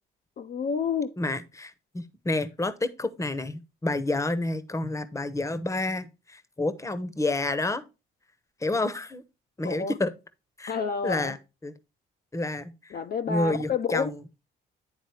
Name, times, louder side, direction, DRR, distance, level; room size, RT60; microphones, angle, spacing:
voice 1, 0.4-1.1 9.6-10.0 10.7-11.4 12.9-14.1, left 6 dB, 50° left, 0.6 m, -29 dB
voice 2, 1.2-7.8 8.6-9.2 9.6-10.1 10.6-10.8 11.0-11.4 11.6-11.7 12.3-13.0 13.3-14.2, left 2 dB, 15° left, 0.9 m, -29 dB
9.8 x 3.7 x 4.7 m
cardioid pair, 90°, 20 cm